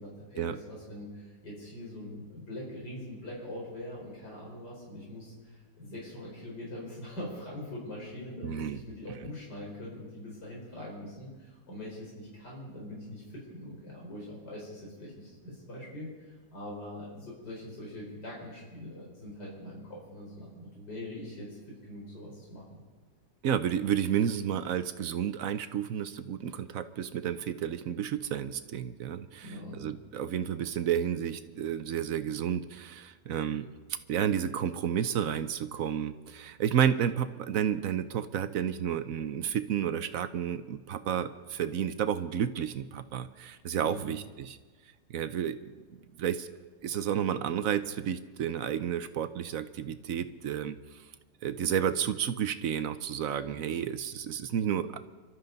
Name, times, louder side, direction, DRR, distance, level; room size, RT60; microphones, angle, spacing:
voice 1, 0.0-21.5 21.8-22.8 29.4-29.8 43.8-44.1, left 1 dB, 65° left, -4 dB, 5.2 m, -43 dB
voice 2, 8.4-8.8 23.4-33.7 34.1-44.6 45.1-45.7 46.2-46.5 46.8-51.0 51.4-55.0, right 9 dB, 60° right, 11 dB, 0.9 m, -31 dB
27.0 x 12.5 x 4.0 m, 1.4 s
omnidirectional pair, 1.9 m